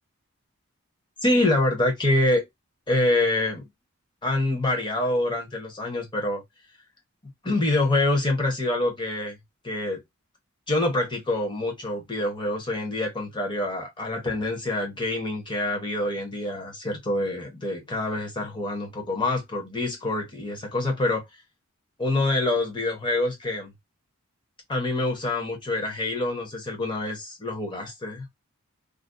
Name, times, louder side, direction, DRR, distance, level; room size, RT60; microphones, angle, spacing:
voice 1, 1.2-2.4 2.9-3.6 4.2-6.4 7.4-9.4 9.6-10.0 10.7-21.2 22.0-23.7 24.7-28.2, left 2 dB, 20° left, 0.8 m, -26 dB
2.4 x 2.0 x 2.5 m
head